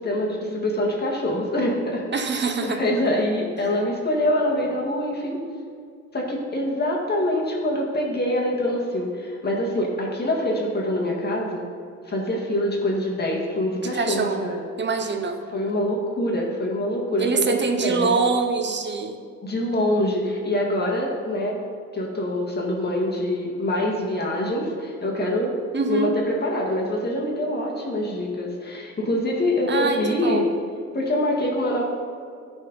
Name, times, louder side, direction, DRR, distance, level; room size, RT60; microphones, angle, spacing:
voice 1, 0.0-2.0 2.3-5.4 6.1-11.7 12.1-14.6 15.5-18.2 19.4-21.6 21.9-25.5 25.9-30.5 30.9-31.8, left 1 dB, 35° left, -2 dB, 1.8 m, -25 dB
voice 2, 2.1-2.8 13.9-14.5 14.8-15.4 17.2-19.2 25.7-26.1 29.7-30.5, right 4 dB, 35° right, 6 dB, 0.8 m, -24 dB
11.5 x 4.4 x 5.4 m, 2.2 s
cardioid pair, 90°, 30 cm